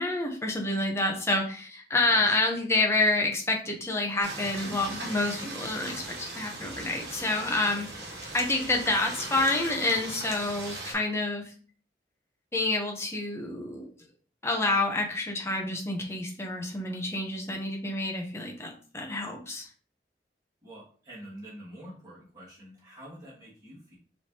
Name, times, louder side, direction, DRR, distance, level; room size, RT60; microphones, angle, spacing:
voice 1, 0.0-8.0 8.3-11.5 12.5-13.9 14.4-19.7, left 2 dB, 15° left, 1 dB, 0.7 m, -28 dB
sound 1, 4.2-10.9, right 2 dB, 70° right, 1.3 m, -39 dB
voice 2, 20.6-24.0, right 1 dB, 20° right, -7 dB, 2.1 m, -46 dB
4.8 x 3.2 x 2.8 m, 0.43 s
head